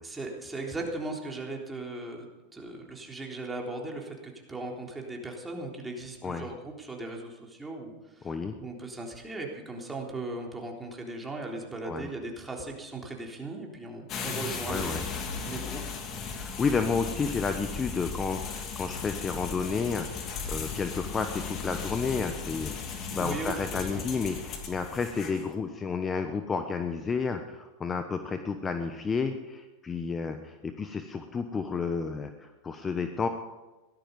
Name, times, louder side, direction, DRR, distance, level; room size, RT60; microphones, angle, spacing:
voice 1, 0.0-8.3 8.6-15.0 15.4-15.8 23.2-24.0, right 2 dB, 10° right, 0 dB, 3.7 m, -38 dB
voice 2, 8.2-8.5 11.8-12.1 14.7-15.1 16.3-22.8 23.1-33.3, left 5 dB, 20° left, 7 dB, 1.1 m, -31 dB
sound 1, 14.1-25.5, left 5 dB, 40° left, 2.8 m, -36 dB
17.0 x 12.5 x 5.4 m, 1.1 s
hypercardioid pair, 100°, 0 cm